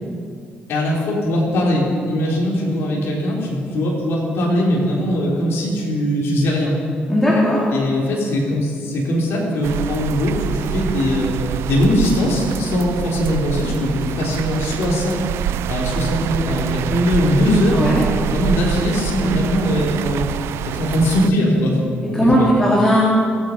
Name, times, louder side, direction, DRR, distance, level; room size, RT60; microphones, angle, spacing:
voice 1, 0.7-6.7 7.7-11.3 11.7-15.3 15.7-17.9 18.3-20.2 20.7-21.8 22.1-22.5, left 1 dB, 70° left, -3 dB, 3.7 m, -20 dB
voice 2, 7.1-7.7 17.7-18.0 19.2-19.4 22.1-23.0, equal, 10° left, -7 dB, 3.7 m, -17 dB
sound 1, 9.6-21.3, right 11 dB, 80° right, 0.4 m, -26 dB
22.0 x 9.0 x 5.3 m, 2.4 s
supercardioid pair, 70°, 4 cm